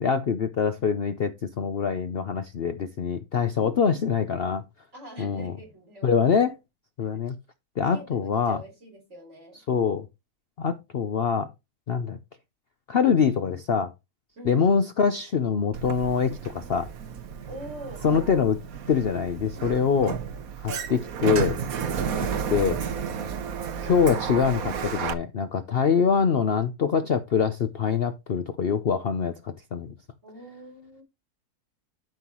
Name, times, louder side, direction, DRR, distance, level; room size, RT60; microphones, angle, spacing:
voice 1, 0.0-4.6 5.2-5.5 6.0-6.5 7.0-7.4 7.8-8.6 9.7-10.1 10.6-11.5 11.9-12.2 12.9-13.9 14.4-16.9 18.0-18.6 18.9-20.1 20.6-21.6 22.5-22.8 23.8-29.9, left 6 dB, 50° left, 0.7 m, -24 dB
voice 2, 4.9-6.3 7.9-9.6 14.4-14.7 17.4-18.3 19.7-19.9 30.2-31.0, right 1 dB, 50° right, 4.5 m, -44 dB
Sliding door, 15.7-25.1, right 7 dB, 70° right, 1.4 m, -32 dB
12.0 x 5.7 x 3.0 m
omnidirectional pair, 1.6 m